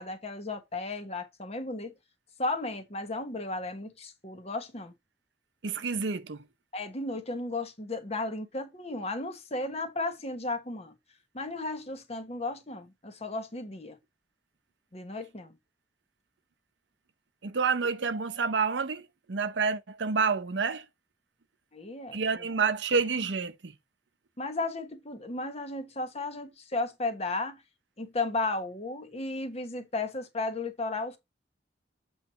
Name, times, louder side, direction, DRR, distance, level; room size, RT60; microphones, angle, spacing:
voice 1, 0.0-1.9 2.4-4.9 6.7-10.9 11.3-14.0 14.9-15.5 21.7-22.5 24.4-27.6 28.0-31.2, left 2 dB, 35° left, 1.2 m, -34 dB
voice 2, 5.6-6.4 17.4-19.0 19.3-20.8 22.1-23.7, right 5 dB, 75° right, 0.7 m, -28 dB
7.8 x 3.2 x 5.6 m
head